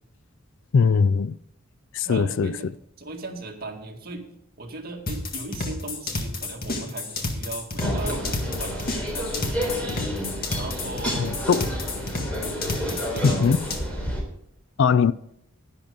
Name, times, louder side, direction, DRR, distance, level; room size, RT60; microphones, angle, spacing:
voice 1, 0.7-1.4 1.9-2.5 11.2-11.7 13.2-13.6 14.8-15.1, left 5 dB, 60° left, 0.4 m, -20 dB
voice 2, 2.0-4.2 4.6-8.3 8.6-9.9 10.5-11.3 12.8-13.6, right 2 dB, 45° right, 2.1 m, -37 dB
sound 1, 5.1-13.8, left 2 dB, 45° left, 1.9 m, -30 dB
sound 2, 7.8-14.2, equal, 5° left, 3.4 m, -30 dB
11.0 x 10.5 x 5.3 m
head